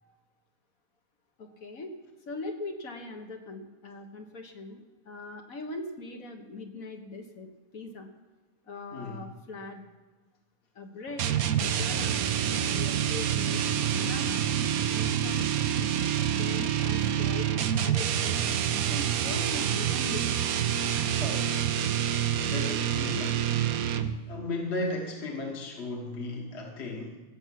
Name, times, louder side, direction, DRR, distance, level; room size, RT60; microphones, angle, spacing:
voice 1, 1.4-1.9 2.3-8.1 8.7-9.8 10.8-11.3 11.5-12.2 12.5-14.5 14.9-15.9 16.3-18.4 18.9-20.3, left 2 dB, 70° left, 3 dB, 1.9 m, -41 dB
voice 2, 8.9-9.2 20.8-21.8 22.1-23.5 24.3-27.2, left 2 dB, 50° left, 1 dB, 1.8 m, -36 dB
sound 1, 11.2-24.3, right 9 dB, 80° right, 1.2 m, -27 dB
16.0 x 7.1 x 7.7 m, 1.2 s
omnidirectional pair, 1.5 m